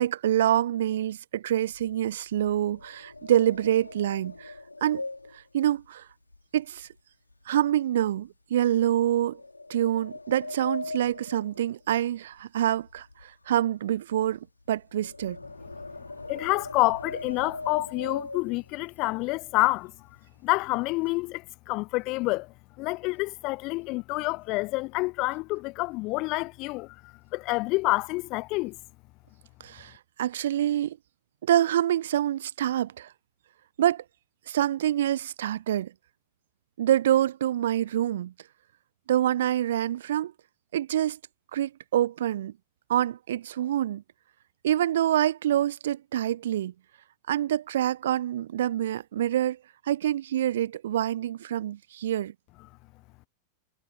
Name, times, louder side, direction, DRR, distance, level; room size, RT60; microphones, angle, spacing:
voice 1, 0.0-4.5 4.8-5.0 5.3-6.1 6.5-6.9 7.5-9.4 9.7-15.4 29.6-31.0 31.4-33.1 33.8-34.0 34.5-35.9 36.8-38.3 39.1-40.3 40.7-41.2 41.5-42.5 42.9-44.0 44.6-46.7 47.3-49.6 49.9-52.3, right 11 dB, 60° right, 1.1 m, -26 dB
sound 1, 1.6-7.0 7.3-7.6 8.1-8.3 9.1-12.4 12.7-18.9 19.5-19.6 19.9-20.2 20.5-21.2, left 2 dB, 80° left, 4.1 m, -41 dB
voice 2, 16.3-19.9 20.4-28.8, left 23 dB, 40° left, 0.5 m, -28 dB
figure-of-eight pair, 90°, 0 cm